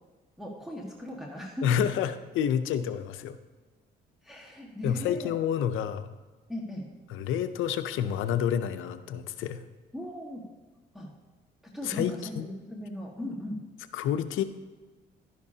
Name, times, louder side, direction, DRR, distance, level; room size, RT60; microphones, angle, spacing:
voice 1, 0.4-1.7 4.2-5.3 6.5-6.8 9.9-10.4 10.9-11.1 11.7-13.6, left 1 dB, ahead, -3 dB, 1.6 m, -38 dB
voice 2, 1.6-3.4 4.8-6.1 7.1-9.6 11.8-12.4 13.9-14.4, left 9 dB, 85° left, 11 dB, 0.6 m, -29 dB
11.5 x 10.5 x 2.8 m, 1.3 s
cardioid pair, 90°, 20 cm